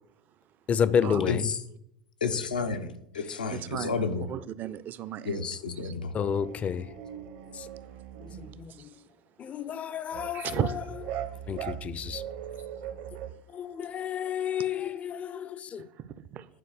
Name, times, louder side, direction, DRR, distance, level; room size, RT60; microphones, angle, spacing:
voice 1, 0.7-1.5 6.1-6.9 7.5-7.7 8.2-8.9 9.4-10.8 11.5-12.2 13.5-15.9, left 8 dB, 30° left, 0.5 m, -30 dB
voice 2, 1.3-1.6 2.2-4.2 5.2-6.1, left 5 dB, 85° left, 0.9 m, -31 dB
voice 3, 3.5-4.0 4.3-5.5 5.8-5.9 8.8-8.9 10.3-10.9 15.8-16.5, right 9 dB, 40° right, 0.6 m, -35 dB
sound 1, 6.2-8.7 10.1-13.3, right 10 dB, 60° right, 1.0 m, -40 dB
9.9 x 4.7 x 6.3 m
hypercardioid pair, 80°, 4 cm